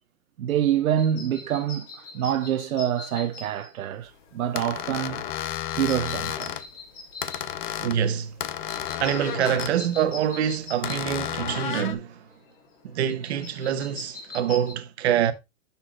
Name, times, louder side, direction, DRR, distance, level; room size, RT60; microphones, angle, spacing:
voice 1, 0.4-5.3 5.8-6.6, right 10 dB, 85° right, 0.9 m, -26 dB
sound 1, 0.9-14.7, left 3 dB, 20° left, 3.1 m, -43 dB
sound 2, 4.6-6.6 7.2-8.0 8.4-9.8 10.8-11.9, left 11 dB, 40° left, 0.7 m, -32 dB
voice 2, 7.8-8.3 9.0-12.2 12.8-15.3, right 9 dB, 50° right, 1.2 m, -25 dB
10.0 x 7.0 x 2.3 m
hypercardioid pair, 170°, 41 cm